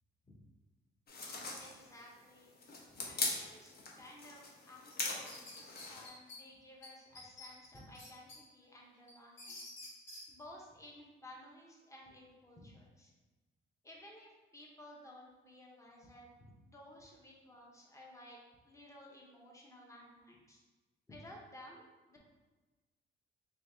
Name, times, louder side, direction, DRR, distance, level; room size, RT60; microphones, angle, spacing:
sound 1, 1.1-6.1, left 3 dB, 50° left, 0.8 m, -41 dB
voice 1, 1.6-2.5 2.9-9.6 10.3-13.1 13.8-18.4 18.7-20.6 21.1-22.2, left 1 dB, 15° left, -2 dB, 0.8 m, -55 dB
sound 2, 4.9-6.4 6.8-6.9 7.2-8.4 8.8-10.2, left 2 dB, 75° left, 1.2 m, -50 dB
2.8 x 2.7 x 3.5 m, 1.2 s
cardioid pair, 90°, 20 cm